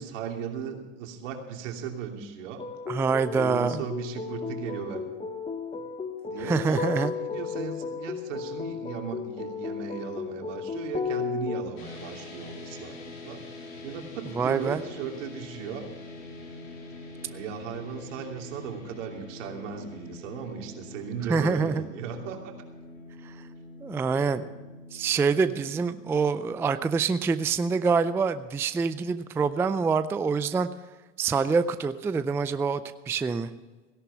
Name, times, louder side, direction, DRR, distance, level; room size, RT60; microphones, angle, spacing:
voice 1, 0.0-2.6 3.3-5.0 6.2-6.8 7.1-12.9 13.2-13.4 13.8-15.9 17.3-22.5, right 7 dB, 70° right, 2 dB, 3.0 m, -36 dB
sound 1, 2.6-11.6, left 5 dB, 15° left, 1.2 m, -34 dB
voice 2, 2.9-3.8 6.4-7.1 14.4-14.8 21.3-21.8 23.3-23.4 23.8-24.4 24.9-30.7 31.2-32.8 33.1-33.5, right 5 dB, 5° right, 12 dB, 0.3 m, -26 dB
sound 2, 11.8-28.1, left 2 dB, 90° left, 3.9 m, -45 dB
17.0 x 11.5 x 5.7 m, 1.3 s
hypercardioid pair, 100°, 39 cm